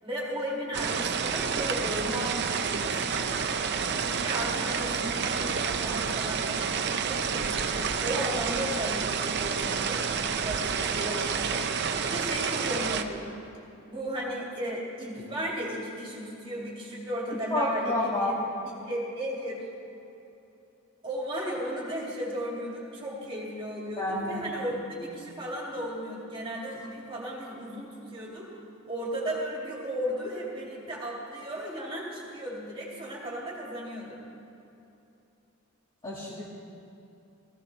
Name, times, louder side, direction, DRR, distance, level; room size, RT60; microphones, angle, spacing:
voice 1, 0.0-3.3 4.0-10.0 10.4-11.7 12.0-13.3 13.9-18.4 18.7-19.6 21.0-28.5 28.9-34.3, equal, 25° right, -4 dB, 2.6 m, -35 dB
sound 1, 0.7-13.0, right 6 dB, 55° right, 0.6 m, -29 dB
sound 2, 3.7-4.2 4.5-4.8 5.2-5.7 6.0-6.5 7.1-7.6 7.9-8.4 8.8-9.3 9.7-9.8, left 1 dB, ahead, 3.5 m, -48 dB
voice 2, 17.5-18.3 24.0-24.4 24.9-25.1 36.0-36.4, left 2 dB, 20° left, -7 dB, 1.9 m, -29 dB
18.5 x 15.5 x 3.3 m, 2.8 s
head